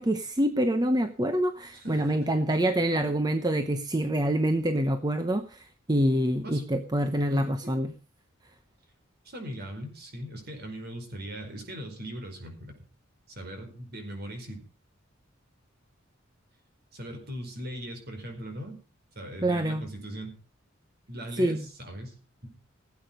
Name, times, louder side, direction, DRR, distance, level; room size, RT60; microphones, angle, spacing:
voice 1, 0.0-7.9 19.4-19.8 21.4-21.7, right 1 dB, 20° right, 8 dB, 0.9 m, -26 dB
voice 2, 1.7-2.3 6.4-6.6 7.2-7.8 9.2-12.7 13.3-14.6 16.9-18.8 19.1-20.4 21.1-22.2 22.4-22.5, equal, 50° right, 4 dB, 4.9 m, -39 dB
17.0 x 8.7 x 5.2 m, 0.36 s
head